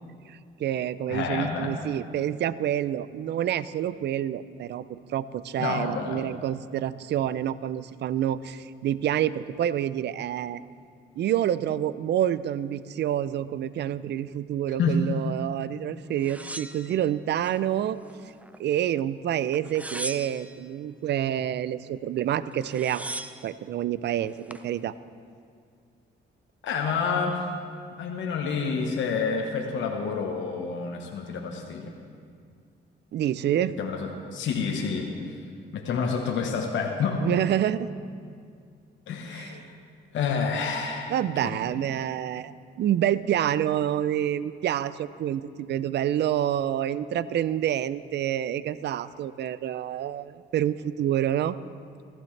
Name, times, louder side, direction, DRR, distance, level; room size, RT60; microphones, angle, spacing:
voice 1, 0.3-10.6 11.2-18.0 18.6-23.0 23.4-24.9 33.1-33.8 37.2-37.9 39.3-39.6 41.1-51.6, right 11 dB, 60° right, 16 dB, 0.4 m, -28 dB
voice 2, 1.1-1.7 5.6-6.2 14.8-15.0 26.6-27.4 28.0-31.9 33.8-35.1 35.7-37.2 39.1-39.6 40.1-41.1 41.4-41.6, left 5 dB, 70° left, 1 dB, 1.2 m, -28 dB
sound 1, 16.2-17.6 18.0-18.8 19.5-20.6 22.2-22.3 22.5-23.5 24.2-24.7, right 1 dB, 5° right, 0.5 m, -38 dB
15.0 x 14.5 x 3.3 m, 2.2 s
cardioid pair, 90°, 20 cm